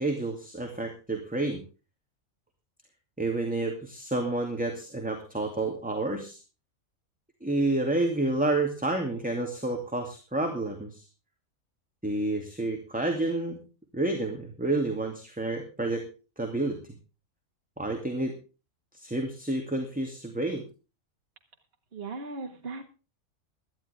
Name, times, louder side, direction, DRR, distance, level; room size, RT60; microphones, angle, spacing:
voice 1, 0.0-1.6 3.2-6.4 7.4-11.0 12.0-13.6 13.9-16.0 16.4-16.8 17.8-18.3 18.9-20.6, right 2 dB, 5° right, 2 dB, 2.5 m, -29 dB
voice 2, 21.9-22.9, right 3 dB, 45° right, 3 dB, 1.9 m, -37 dB
18.0 x 12.5 x 3.5 m, 0.34 s
omnidirectional pair, 1.4 m